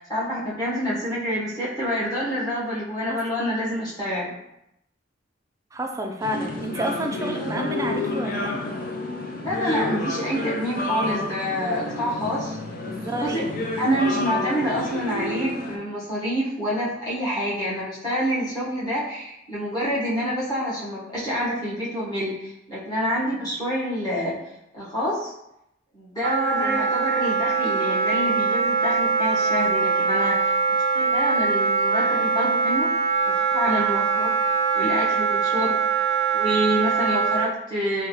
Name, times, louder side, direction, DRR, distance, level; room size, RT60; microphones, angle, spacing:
voice 1, 0.1-4.3 9.4-12.6 13.2-13.4 13.8-24.4 24.7-25.3 25.9-30.4 30.9-32.9 33.2-34.3 34.7-35.8 36.3-38.1, equal, 20° left, -9 dB, 1.2 m, -27 dB
voice 2, 5.7-8.5 12.9-13.5 26.6-26.8, right 1 dB, 15° right, 2 dB, 0.3 m, -30 dB
sound 1, 6.2-15.8, left 2 dB, 50° left, 0.4 m, -30 dB
Wind instrument woodwind instrument, 26.2-37.5, right 5 dB, 85° right, 0.4 m, -22 dB
3.4 x 2.3 x 3.0 m, 0.83 s
head